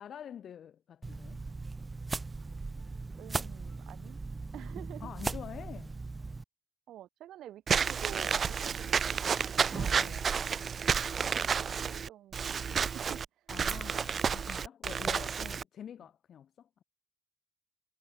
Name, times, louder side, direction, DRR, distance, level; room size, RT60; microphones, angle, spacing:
voice 1, 0.0-1.4 5.0-6.0 9.7-10.6 13.5-16.8, left 9 dB, 60° left, 3.3 m, -47 dB
sound 1, 1.0-6.4, right 3 dB, 25° right, 1.0 m, -39 dB
voice 2, 3.2-4.2 4.5-5.1 6.9-9.9 11.2-13.5, right 13 dB, 80° right, 1.7 m, -49 dB
Walk footsteps / Squeak, 7.7-15.6, right 6 dB, 45° right, 0.8 m, -31 dB
cardioid pair, 90°, 0 cm